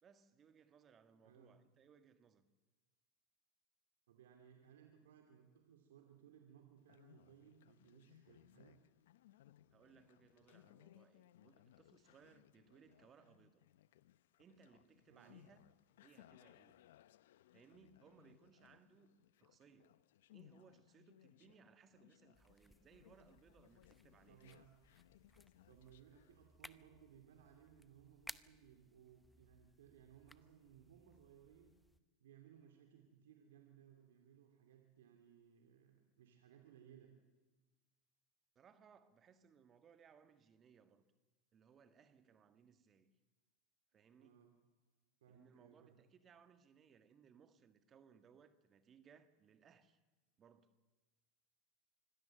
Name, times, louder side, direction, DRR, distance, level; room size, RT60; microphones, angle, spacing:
voice 1, 0.0-2.4 9.7-13.6 14.4-15.6 16.0-16.8 17.5-20.0 20.3-24.4 38.5-41.0 41.5-43.1 43.9-44.4 45.3-50.0 50.4-50.7, right 6 dB, 35° right, 1.6 m, -66 dB
voice 2, 1.2-1.5 4.1-8.8 15.1-15.4 24.3-24.7 25.7-31.7 32.2-37.1 44.2-44.5 45.2-46.0, right 9 dB, 85° right, 2.8 m, -63 dB
Conversation, 6.8-26.5, left 13 dB, 80° left, 0.6 m, -67 dB
sound 1, 22.3-32.0, equal, ahead, 0.8 m, -61 dB
25.0 x 16.5 x 7.8 m
hypercardioid pair, 105°, 0 cm